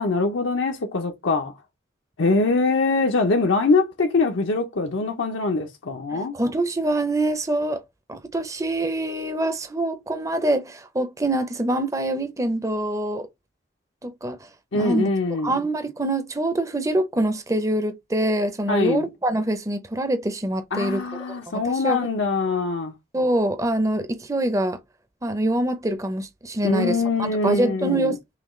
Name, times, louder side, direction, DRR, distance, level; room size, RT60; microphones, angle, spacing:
voice 1, 0.0-1.5 2.2-6.4 14.7-15.6 18.7-19.1 20.7-22.9 26.6-28.2, left 3 dB, 75° left, 0.7 m, -23 dB
voice 2, 6.1-7.8 8.1-13.3 14.0-14.4 14.7-15.1 15.4-21.0 21.5-22.1 23.1-24.8 25.2-27.0 27.4-28.2, right 1 dB, 15° right, 0.5 m, -25 dB
5.7 x 2.3 x 3.1 m
head